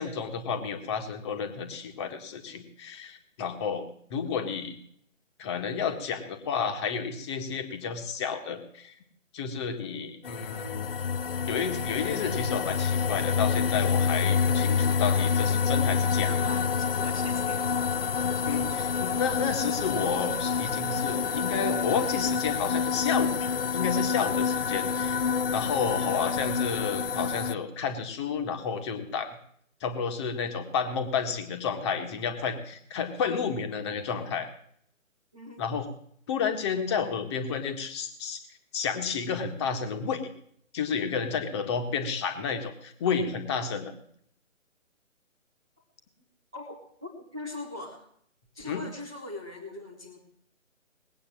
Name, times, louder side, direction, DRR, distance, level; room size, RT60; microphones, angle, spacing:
voice 1, 0.0-3.8 4.1-4.8 5.4-8.9 9.3-10.9 11.5-16.3 18.4-23.5 23.7-25.2 25.5-29.4 29.8-34.5 35.6-35.9 36.3-38.4 38.7-40.3 40.7-43.9 48.6-48.8, left 6 dB, 20° left, 6 dB, 1.6 m, -31 dB
sound 1, 10.2-27.5, left 6 dB, 45° left, 0.5 m, -27 dB
voice 2, 16.2-17.7 35.3-35.6 46.5-48.1 48.5-50.2, left 2 dB, 5° right, -7 dB, 0.6 m, -41 dB
20.0 x 8.6 x 7.5 m, 0.66 s
figure-of-eight pair, 150°, 40 cm